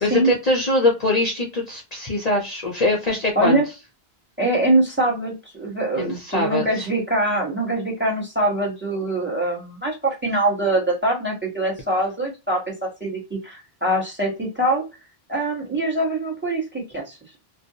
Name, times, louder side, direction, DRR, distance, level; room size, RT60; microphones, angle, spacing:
voice 1, 0.0-3.6 5.9-6.9, left 2 dB, 45° left, 0 dB, 0.7 m, -22 dB
voice 2, 3.3-3.7 4.4-14.8 15.3-17.2, right 1 dB, 10° right, -1 dB, 1.0 m, -23 dB
2.6 x 2.2 x 2.6 m, 0.27 s
omnidirectional pair, 1.1 m